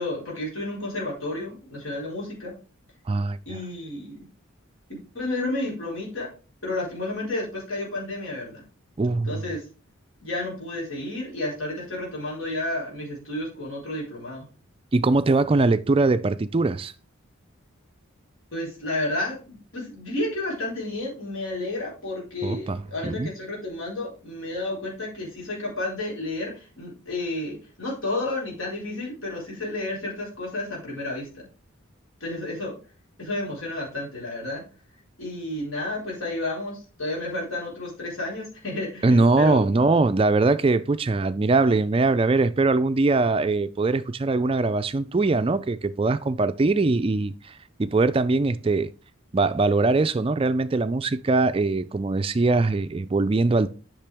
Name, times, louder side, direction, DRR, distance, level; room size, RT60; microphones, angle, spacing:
voice 1, 0.0-2.5 3.5-4.3 4.9-6.3 6.6-8.6 9.2-9.6 10.2-14.5 18.5-31.3 32.2-32.8 33.2-34.6 35.2-39.7, left 2 dB, 70° left, 4.4 m, -31 dB
voice 2, 3.1-3.6 9.0-9.4 14.9-16.9 22.4-23.3 39.0-48.9 49.3-53.7, right 3 dB, 25° right, 0.3 m, -22 dB
8.6 x 5.9 x 3.5 m
head